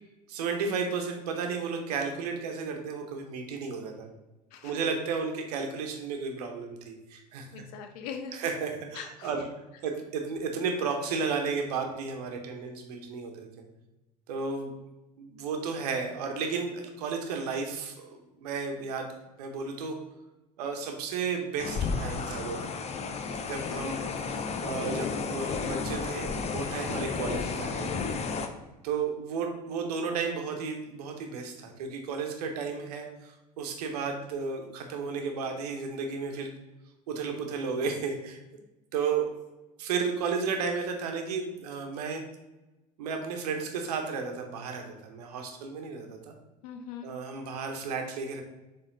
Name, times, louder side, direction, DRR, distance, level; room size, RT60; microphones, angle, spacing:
voice 1, 0.3-4.1 4.6-7.5 8.4-9.5 9.8-13.6 14.3-14.7 15.2-19.1 19.4-20.0 20.6-22.6 23.4-27.9 28.8-36.5 37.1-38.4 38.9-39.3 39.8-42.2 43.0-46.3 47.0-48.4, right 5 dB, 70° right, 4 dB, 1.1 m, -33 dB
voice 2, 4.5-4.8 7.5-8.5 8.9-9.4 46.6-47.1, left 7 dB, 65° left, 6 dB, 0.7 m, -41 dB
sound 1, 21.6-28.5, left 4 dB, 30° left, 0.7 m, -32 dB
7.1 x 3.6 x 3.9 m, 1.1 s
hypercardioid pair, 75°, 21 cm